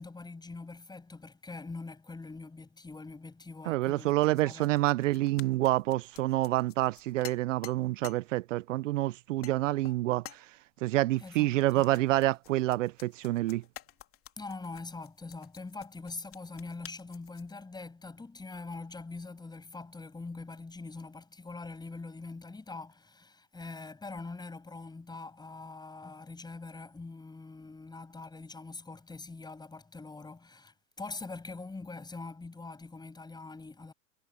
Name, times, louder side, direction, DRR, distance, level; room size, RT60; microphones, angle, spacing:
voice 1, 0.0-4.7 11.2-11.9 14.4-33.9, left 3 dB, 10° left, 7.9 m, -43 dB
voice 2, 3.7-10.5 10.8-13.6, right 17 dB, 60° right, 0.8 m, -28 dB
sound 1, 4.2-8.2 8.8-9.0 9.4-9.6 9.8-10.4 11.6-17.5, left 12 dB, 30° left, 2.9 m, -50 dB
hypercardioid pair, 110°, 42 cm